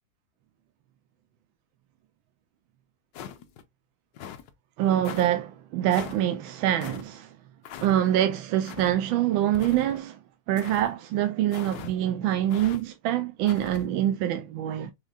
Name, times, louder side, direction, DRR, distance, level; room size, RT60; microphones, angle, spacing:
sound 1, 3.1-3.6 4.1-4.5 5.0-5.3 5.9-6.2 6.8-7.0 7.6-7.9 8.6-8.9 9.5-10.0 10.6-10.9 11.5-11.9 12.5-12.8 13.5-13.8, left 8 dB, 70° left, 1.2 m, -41 dB
voice 1, 4.8-7.4 7.8-10.2 10.5-14.9, right 12 dB, 80° right, 1.3 m, -25 dB
6.3 x 3.3 x 2.4 m
omnidirectional pair, 2.2 m